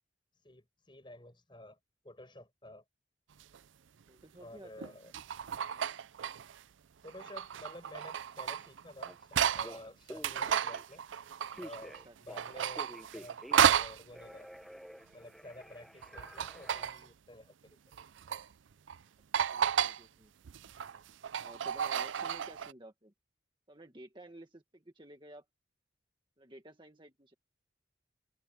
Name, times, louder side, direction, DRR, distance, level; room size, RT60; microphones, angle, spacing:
voice 1, 0.4-1.8 2.0-2.8 4.4-5.1 7.0-11.0 11.6-14.5 15.1-17.8, left 1 dB, 25° left, 5.8 m, -51 dB
sound 1, 3.4-3.6 4.8-6.6 7.1-9.8 10.1-12.0 12.3-14.0 16.0-17.1 17.9-18.5 18.9-19.0 19.3-20.0 20.5-22.7, right 8 dB, 90° right, 0.5 m, -32 dB
voice 2, 4.1-5.0 12.0-12.2 19.5-20.9 21.4-23.1 23.7-25.5 26.4-27.3, right 1 dB, 25° right, 1.8 m, -54 dB
Telephone, 9.1-9.2 9.6-11.0 11.5-13.8 14.1-16.9, equal, ahead, 1.1 m, -50 dB
head